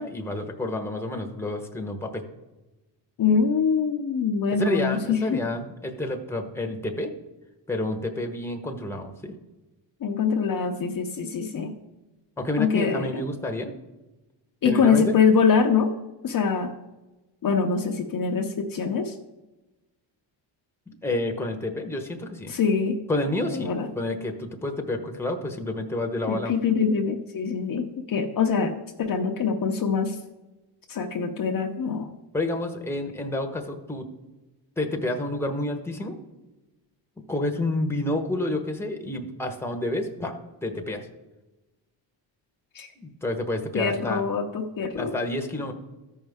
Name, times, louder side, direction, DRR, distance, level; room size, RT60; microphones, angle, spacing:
voice 1, 0.0-2.2 4.5-7.1 7.7-9.3 12.4-13.7 14.6-15.1 20.9-22.5 23.1-26.5 32.3-34.1 34.8-36.2 37.3-41.1 43.0-44.2 44.9-45.7, left 1 dB, 5° left, 5 dB, 1.1 m, -29 dB
voice 2, 3.2-5.4 10.0-11.7 12.6-13.2 14.6-15.9 16.2-16.7 17.4-19.1 22.5-23.0 23.5-23.9 26.3-30.2 30.9-32.1 42.7-42.9 43.7-45.2, left 6 dB, 45° left, 3 dB, 0.8 m, -24 dB
13.5 x 5.4 x 3.6 m, 1.1 s
cardioid pair, 85°, 47 cm